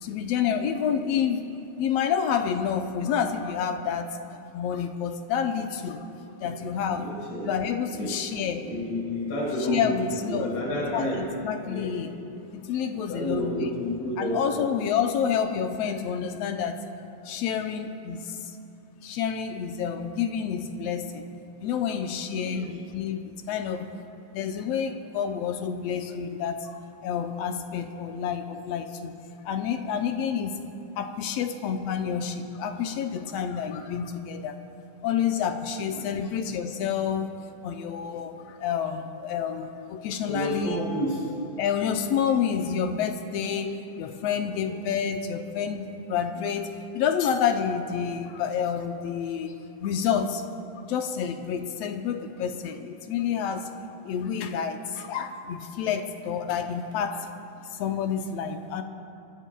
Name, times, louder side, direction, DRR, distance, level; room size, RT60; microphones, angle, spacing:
voice 1, 0.0-4.2 4.5-6.1 6.4-7.1 7.4-8.6 9.6-10.5 10.9-12.1 12.5-13.7 14.2-16.8 17.3-18.5 19.0-21.2 21.6-23.9 24.3-29.2 29.5-30.6 31.0-34.6 35.0-40.8 41.6-49.5 49.8-50.4 50.8-53.7 54.0-57.3 57.7-58.8, left 7 dB, 75° left, 6 dB, 1.7 m, -29 dB
voice 2, 7.0-7.6 7.9-8.2 8.6-11.2 11.7-12.0 13.0-14.7 22.4-22.8 35.8-36.1 40.3-41.3 44.4-44.8, equal, 55° left, -5 dB, 3.7 m, -31 dB
29.0 x 15.0 x 2.3 m, 2.8 s
omnidirectional pair, 3.3 m